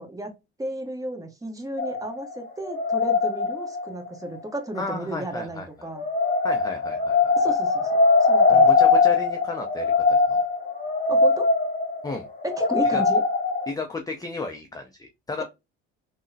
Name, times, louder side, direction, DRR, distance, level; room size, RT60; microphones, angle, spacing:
voice 1, 0.0-6.0 7.4-7.9 8.2-8.7 11.1-11.5 12.4-13.2 15.4-15.5, right 1 dB, 10° right, 4 dB, 0.9 m, -33 dB
sound 1, 1.8-4.1 6.0-13.7, left 4 dB, 30° left, 1.1 m, -21 dB
voice 2, 4.7-5.9 6.4-7.4 8.5-10.4 12.0-12.3 12.8-13.0 13.7-15.4, left 3 dB, 10° left, 4 dB, 0.4 m, -33 dB
3.6 x 2.1 x 2.6 m, 0.23 s
supercardioid pair, 80°, 31 cm